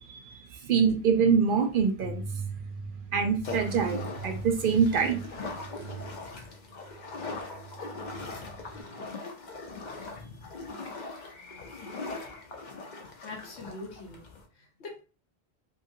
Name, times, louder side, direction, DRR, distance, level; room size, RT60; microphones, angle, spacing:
voice 1, 0.0-2.2 3.1-5.2, right 6 dB, 60° right, 5 dB, 0.6 m, -25 dB
sound 1, 2.0-8.8, right 4 dB, 90° right, 1.0 m, -41 dB
sound 2, 3.4-14.5, left 3 dB, 50° left, 0.7 m, -40 dB
voice 2, 13.2-14.2 14.8-15.0, left 2 dB, 90° left, 1 dB, 1.1 m, -42 dB
2.8 x 2.8 x 2.6 m, 0.35 s
omnidirectional pair, 1.1 m